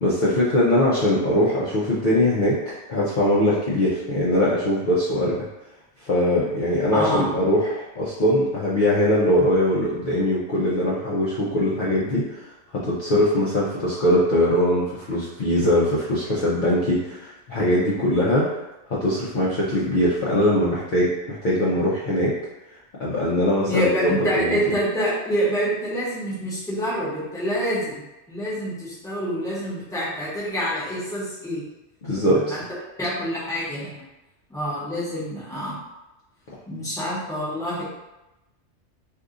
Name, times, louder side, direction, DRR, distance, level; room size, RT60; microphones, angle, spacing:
voice 1, 0.0-5.5 6.0-18.6 18.9-22.4 23.0-24.1 24.3-24.6 32.0-32.6, left 1 dB, 55° left, -7 dB, 0.6 m, -21 dB
voice 2, 6.9-7.3 23.7-28.0 28.3-31.6 32.2-32.6 33.0-34.0 34.5-35.8 36.7-37.8, equal, 5° left, -8 dB, 0.9 m, -26 dB
2.7 x 2.4 x 3.7 m, 0.98 s
omnidirectional pair, 1.2 m